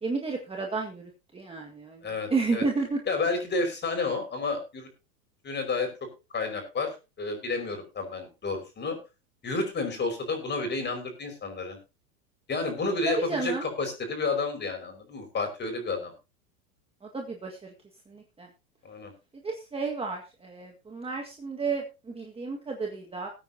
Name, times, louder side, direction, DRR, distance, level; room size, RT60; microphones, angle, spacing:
voice 1, 0.0-3.0 13.0-13.7 17.0-17.7 18.1-18.5 19.4-23.3, right 4 dB, 10° right, 1 dB, 1.8 m, -32 dB
voice 2, 2.0-2.6 3.1-4.9 5.4-5.9 6.3-9.0 9.4-11.8 12.5-16.1 18.8-19.1, left 3 dB, 20° left, 4 dB, 5.3 m, -30 dB
20.5 x 9.1 x 2.8 m, 0.29 s
hypercardioid pair, 125°, 47 cm